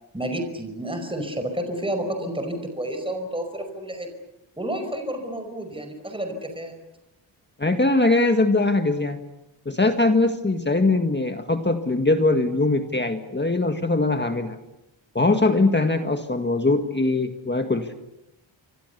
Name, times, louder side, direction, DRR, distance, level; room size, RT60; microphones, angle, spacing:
voice 1, 0.1-4.1 4.6-6.7, right 1 dB, 10° right, 6 dB, 5.1 m, -30 dB
voice 2, 7.6-9.2 9.7-14.6 15.2-17.9, left 2 dB, 20° left, 6 dB, 1.8 m, -21 dB
29.5 x 25.0 x 6.9 m, 0.90 s
wide cardioid pair, 95°, 47 cm